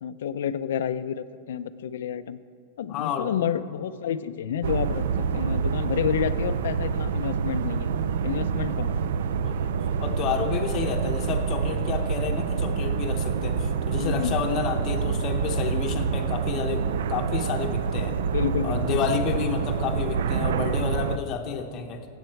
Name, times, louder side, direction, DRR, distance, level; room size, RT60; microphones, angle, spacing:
voice 1, 0.0-2.4 2.8-5.0 5.3-7.9 8.2-9.0 14.0-14.4 18.3-18.8, left 9 dB, 80° left, 13 dB, 0.5 m, -29 dB
voice 2, 2.9-3.3 8.5-8.6 9.4-9.7 10.0-18.2 18.6-22.1, left 6 dB, 25° left, 3 dB, 0.8 m, -30 dB
sound 1, 4.6-21.2, right 6 dB, 70° right, 0.4 m, -27 dB
16.0 x 8.1 x 4.6 m, 2.3 s
supercardioid pair, 180°, 0 cm